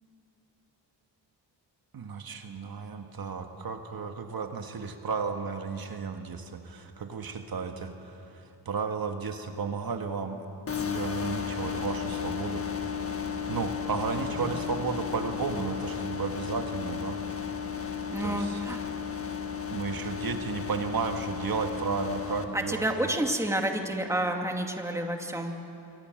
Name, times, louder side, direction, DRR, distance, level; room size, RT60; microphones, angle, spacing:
voice 1, 1.9-10.4 10.8-12.8 13.5-17.2 18.2-18.7 19.7-23.1, right 5 dB, 55° right, 5 dB, 1.7 m, -33 dB
sound 1, 10.7-22.4, left 7 dB, 30° left, 1.7 m, -34 dB
voice 2, 18.1-18.8 22.5-25.6, right 1 dB, 5° right, 3 dB, 2.3 m, -29 dB
27.0 x 24.5 x 7.8 m, 2.9 s
cardioid pair, 105°, 43 cm